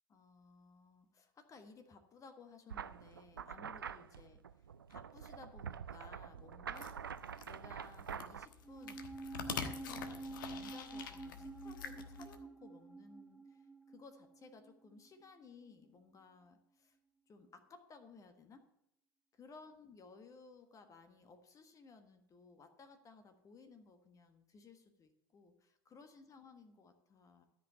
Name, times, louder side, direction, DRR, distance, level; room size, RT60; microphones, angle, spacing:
voice 1, 0.1-6.9 7.4-17.0 17.3-18.6 19.3-27.4, left 4 dB, 30° left, 7 dB, 1.4 m, -59 dB
sound 1, 2.7-8.5, right 7 dB, 80° right, 0.4 m, -46 dB
sound 2, 6.8-12.4, left 7 dB, 70° left, 1.2 m, -46 dB
sound 3, 8.6-15.2 15.5-15.6, right 3 dB, ahead, 0.6 m, -49 dB
13.0 x 5.7 x 8.3 m, 0.78 s
figure-of-eight pair, 75°, 11 cm